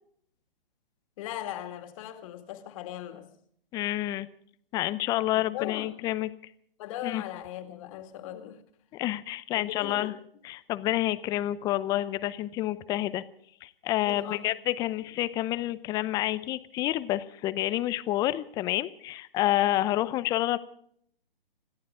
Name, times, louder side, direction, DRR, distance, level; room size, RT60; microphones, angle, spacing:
voice 1, 1.2-3.3 5.4-5.9 6.8-8.6 9.5-10.1 14.1-14.9, left 12 dB, 35° left, 2.3 m, -39 dB
voice 2, 3.7-4.3 4.7-6.3 7.0-7.2 8.9-10.1 10.4-13.2 13.6-20.6, left 15 dB, 15° left, 0.6 m, -29 dB
27.0 x 14.5 x 3.7 m
hypercardioid pair, 135°, 29 cm